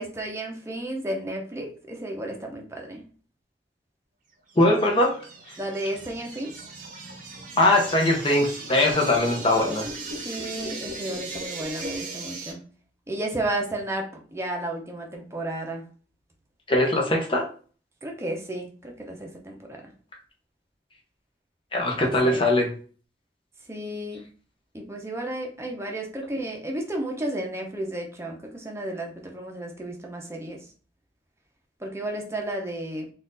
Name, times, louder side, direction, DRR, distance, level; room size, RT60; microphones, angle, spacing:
voice 1, 0.0-3.0 5.6-6.5 10.2-12.6 13.1-15.8 18.0-19.8 21.9-22.7 23.7-24.2 24.7-30.6 31.8-33.1, right 1 dB, 15° right, 1 dB, 0.8 m, -33 dB
sound 1, 4.5-12.5, right 2 dB, 45° right, 0.8 m, -37 dB
voice 2, 4.6-5.2 5.5-5.6 7.6-9.9 16.7-17.4 21.7-22.7, left 1 dB, 30° left, 0 dB, 1.0 m, -21 dB
4.2 x 2.6 x 3.9 m, 0.41 s
head